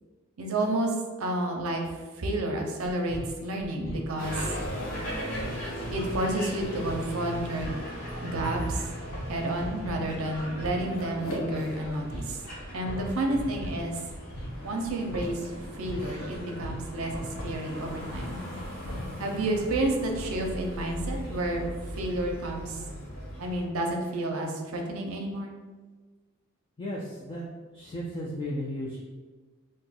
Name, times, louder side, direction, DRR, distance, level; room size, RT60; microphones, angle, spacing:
voice 1, 0.4-1.8 2.2-4.4 5.9-7.7 8.1-8.8 9.3-12.4 12.7-14.0 14.6-17.1 17.4-18.4 19.2-22.8 23.4-25.5, right 1 dB, 80° right, 2 dB, 0.5 m, -30 dB
sound 1, 2.8-19.2, equal, 75° left, 0.8 m, -39 dB
sound 2, 4.2-23.6, equal, 45° left, 0.9 m, -39 dB
voice 2, 26.8-27.4 27.7-29.0, equal, 25° left, -3 dB, 0.3 m, -34 dB
2.5 x 2.3 x 4.0 m, 1.4 s
head